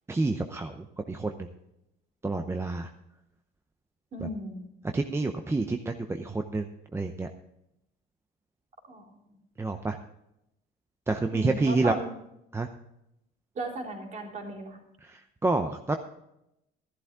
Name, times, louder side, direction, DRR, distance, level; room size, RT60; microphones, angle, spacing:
voice 1, 0.1-1.5 2.2-2.9 4.2-4.3 4.9-6.7 6.9-7.3 9.6-10.0 11.1-11.9 12.5-12.7 15.1-16.0, right 3 dB, 15° right, 5 dB, 0.7 m, -28 dB
voice 2, 4.1-4.7 8.9-9.4 11.3-12.1 13.6-14.8, right 1 dB, 40° right, 1 dB, 3.6 m, -36 dB
14.0 x 11.5 x 3.7 m, 0.84 s
cardioid pair, 115°, 19 cm